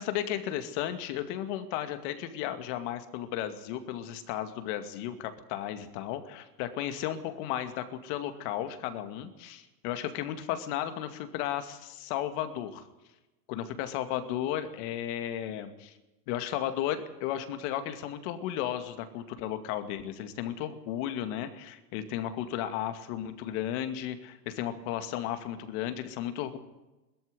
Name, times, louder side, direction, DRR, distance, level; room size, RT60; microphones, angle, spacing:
voice 1, 0.0-12.8 13.5-15.9 16.3-26.6, left 11 dB, 45° left, 9 dB, 2.3 m, -34 dB
21.0 x 14.0 x 9.7 m, 1.0 s
supercardioid pair, 165°, 48 cm